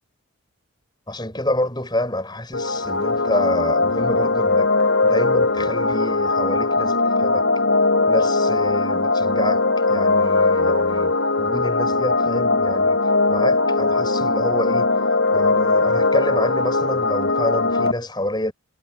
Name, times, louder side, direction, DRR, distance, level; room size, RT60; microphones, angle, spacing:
voice 1, 1.1-7.5 8.1-14.9 15.3-18.5, left 1 dB, 20° left, 6.8 m, -28 dB
sound 1, 2.5-17.9, left 3 dB, 60° left, 3.7 m, -20 dB
head